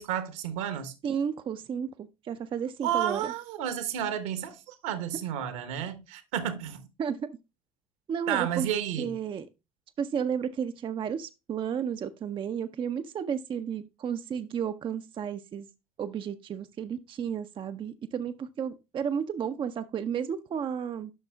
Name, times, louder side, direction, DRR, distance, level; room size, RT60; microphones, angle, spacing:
voice 1, 0.0-0.9 2.8-6.8 8.3-9.1, right 10 dB, 65° right, 1.0 m, -31 dB
voice 2, 1.0-3.3 7.0-7.3 8.1-8.7 9.0-9.5 10.0-15.7 16.0-21.1, right 7 dB, 30° right, 0.4 m, -32 dB
11.0 x 6.0 x 2.3 m
figure-of-eight pair, 60°, 18 cm